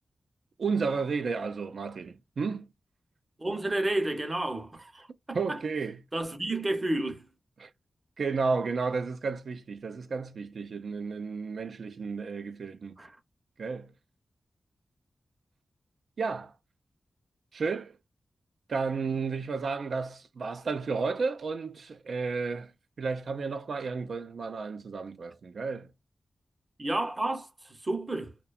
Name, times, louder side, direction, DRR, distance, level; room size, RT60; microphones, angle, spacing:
voice 1, 0.6-2.7 5.3-6.0 7.6-7.7 8.2-13.0 13.6-13.9 16.2-16.5 17.5-18.0 18.7-22.7 23.0-25.9, right 4 dB, 75° right, 0.4 m, -32 dB
voice 2, 3.4-5.6 6.1-7.3 13.0-13.1 26.8-28.3, right 1 dB, 25° right, 0.7 m, -31 dB
2.7 x 2.2 x 2.2 m
wide cardioid pair, 90°, 0 cm